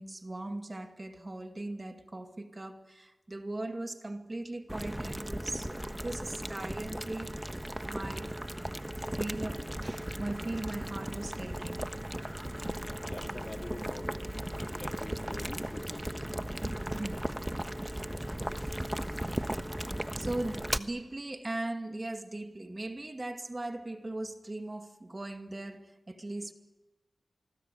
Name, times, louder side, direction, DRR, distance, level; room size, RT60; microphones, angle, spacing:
voice 1, 0.0-7.5 7.8-8.4 9.1-11.8 16.6-17.2 20.2-26.5, right 2 dB, 35° right, 2.2 m, -39 dB
Boiling, 4.7-20.8, right 1 dB, 10° right, 1.2 m, -36 dB
sound 1, 12.8-18.3, left 1 dB, 25° left, 3.4 m, -57 dB
voice 2, 12.9-14.2 14.6-16.3, left 2 dB, 40° left, 3.2 m, -45 dB
25.5 x 21.5 x 9.2 m
cardioid pair, 50°, 0 cm